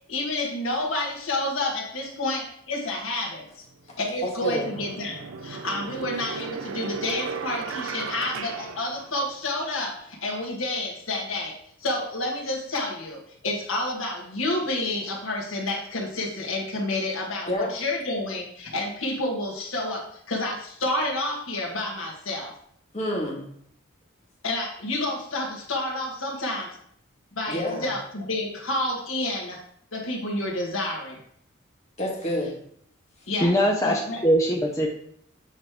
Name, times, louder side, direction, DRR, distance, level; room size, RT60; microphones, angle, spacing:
voice 1, 0.1-3.4 4.0-11.5 11.8-22.5 24.4-26.8 27.3-29.6 29.9-31.2 33.3-33.5 33.8-34.2, left 2 dB, 80° left, -1 dB, 1.5 m, -29 dB
sound 1, 3.7-3.8 4.4-9.6, right 5 dB, 85° right, 0.5 m, -36 dB
voice 2, 3.9-4.7 17.5-17.7 22.9-23.5 27.5-27.9 32.0-32.6, left 1 dB, 30° left, -2 dB, 1.5 m, -29 dB
voice 3, 33.4-34.9, equal, 15° left, -1 dB, 0.6 m, -22 dB
7.5 x 3.2 x 4.7 m, 0.67 s
head